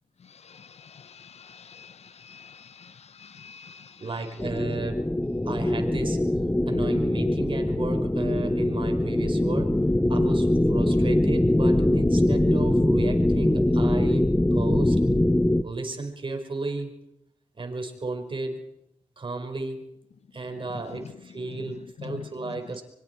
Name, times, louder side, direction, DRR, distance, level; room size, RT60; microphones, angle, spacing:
voice 1, 0.2-4.1 20.7-21.0 21.5-22.8, left 7 dB, 60° left, 15 dB, 1.1 m, -45 dB
voice 2, 4.0-5.1 5.5-6.2 6.7-9.8 10.1-15.0 15.6-16.9 17.6-18.7 19.2-19.9 20.3-22.8, right 3 dB, 45° right, 3 dB, 5.1 m, -34 dB
sound 1, 4.4-15.6, left 1 dB, 10° left, 1.1 m, -22 dB
25.5 x 23.5 x 4.7 m, 0.79 s
supercardioid pair, 45°, 12 cm